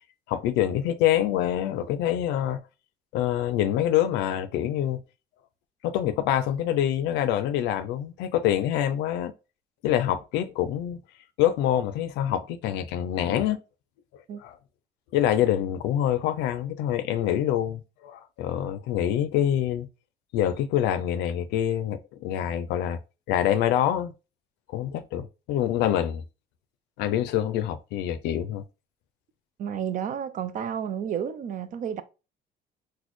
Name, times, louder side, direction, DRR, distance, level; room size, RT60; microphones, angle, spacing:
voice 1, 0.3-2.6 3.1-5.0 5.8-9.3 9.8-11.0 11.4-13.6 14.4-14.6 15.1-19.9 20.3-23.0 23.3-24.1 24.7-26.2 27.0-28.6, left 11 dB, 90° left, 0.4 m, -25 dB
voice 2, 29.6-32.0, right 8 dB, 50° right, 0.5 m, -31 dB
4.0 x 2.2 x 3.1 m
cardioid pair, 110°, 17 cm